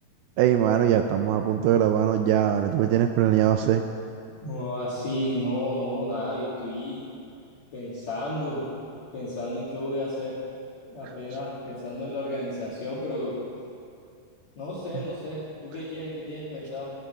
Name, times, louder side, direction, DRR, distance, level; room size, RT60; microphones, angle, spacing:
voice 1, 0.4-3.8 14.9-15.0, right 10 dB, 85° right, 7 dB, 2.1 m, -22 dB
voice 2, 4.4-7.0 7.7-8.6 9.1-10.4 10.9-13.3 14.6-16.9, left 1 dB, 50° left, -9 dB, 2.9 m, -32 dB
15.5 x 9.2 x 6.5 m, 2.4 s
omnidirectional pair, 4.9 m